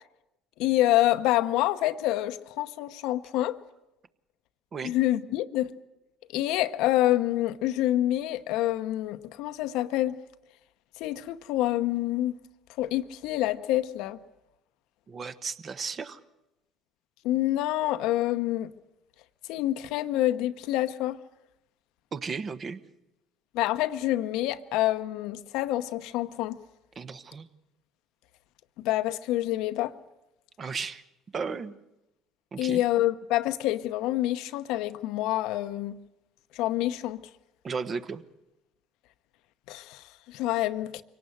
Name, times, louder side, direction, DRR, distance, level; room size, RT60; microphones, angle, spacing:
voice 1, 0.6-3.6 4.8-5.7 6.3-10.2 11.0-12.3 12.8-14.2 17.2-18.7 19.5-21.2 23.5-26.6 28.8-29.9 32.6-36.0 36.5-37.2 39.7-41.0, left 14 dB, 75° left, 0.8 m, -27 dB
voice 2, 15.1-16.2 22.1-22.8 27.0-27.5 30.6-31.0 31.3-31.7 32.5-32.8 37.6-38.2, right 5 dB, 40° right, 1.2 m, -34 dB
24.0 x 18.0 x 7.9 m
supercardioid pair, 75°, 0 cm